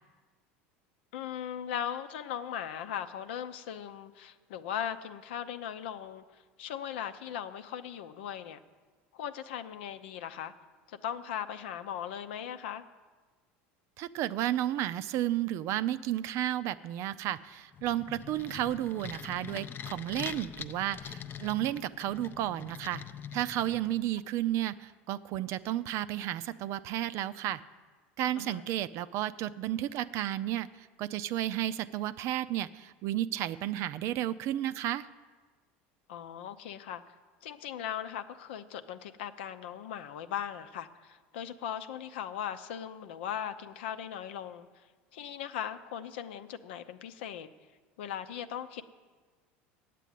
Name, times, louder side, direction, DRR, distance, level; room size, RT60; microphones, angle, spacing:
voice 1, 1.1-6.2 6.6-8.6 9.1-10.5 10.9-12.8 28.4-28.6 36.1-37.1 37.4-44.7 45.1-47.5 48.0-48.8, left 9 dB, 85° left, 9 dB, 0.7 m, -38 dB
voice 2, 14.0-23.0 23.3-27.6 28.2-35.1, right 13 dB, 55° right, 14 dB, 0.5 m, -32 dB
sound 1, 17.7-24.1, left 8 dB, 35° left, 0.5 m, -44 dB
8.4 x 8.2 x 9.2 m, 1.4 s
supercardioid pair, 110°, 6 cm